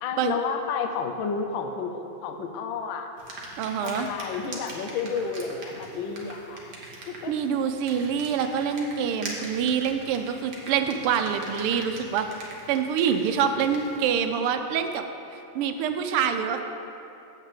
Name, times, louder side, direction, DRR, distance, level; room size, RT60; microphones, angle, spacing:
voice 1, 0.0-3.1 3.8-6.8 7.1-7.3, left 5 dB, 70° left, 5 dB, 1.3 m, -31 dB
sound 1, 3.2-14.3, right 2 dB, 45° right, 1.6 m, -42 dB
voice 2, 3.6-4.1 7.3-15.1 15.5-16.6, right 7 dB, 90° right, 7 dB, 1.6 m, -26 dB
8.0 x 5.9 x 7.3 m, 2.8 s
omnidirectional pair, 2.4 m